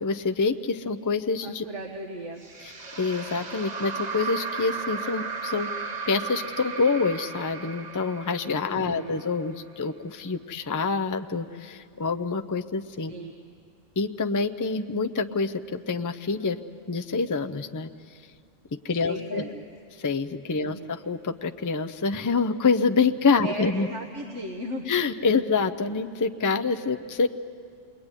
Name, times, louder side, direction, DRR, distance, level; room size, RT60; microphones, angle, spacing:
voice 1, 0.0-1.6 3.0-5.7 6.1-13.1 14.0-16.6 16.9-17.9 18.8-19.4 20.0-23.9 24.9-27.3, left 4 dB, 20° left, 7 dB, 0.5 m, -26 dB
voice 2, 1.4-2.4 8.7-9.3 13.1-13.3 19.0-19.6 20.6-20.9 23.4-24.9, right 1 dB, 70° right, 2 dB, 1.8 m, -36 dB
sound 1, 2.4-9.7, right 5 dB, 35° right, 1.2 m, -35 dB
28.0 x 21.5 x 9.8 m, 2.2 s
omnidirectional pair, 1.3 m